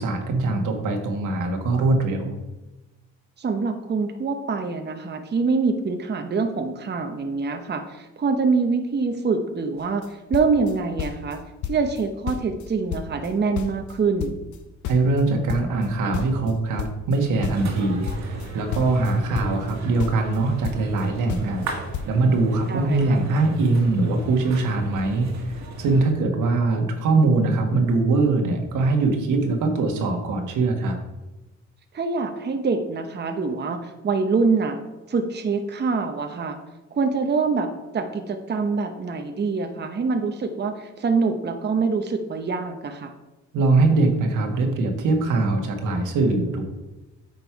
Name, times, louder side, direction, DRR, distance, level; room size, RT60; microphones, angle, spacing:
voice 1, 0.0-2.3 14.9-31.0 43.5-46.6, right 3 dB, 85° right, 3 dB, 1.5 m, -22 dB
voice 2, 3.4-14.4 22.7-23.2 31.9-34.8 35.1-36.6 36.9-43.1, right 4 dB, 35° right, 6 dB, 0.9 m, -25 dB
sound 1, 9.8-10.1 10.3-11.4 11.6-12.0 12.3-13.9 14.2-17.2 17.4-19.7 20.0-21.0 21.3-21.7 21.9-22.1, left 9 dB, 75° left, 0.7 m, -32 dB
sound 2, 17.5-26.1, right 2 dB, 65° right, 1.7 m, -35 dB
9.1 x 5.4 x 4.7 m, 1.1 s
cardioid pair, 90°, 30 cm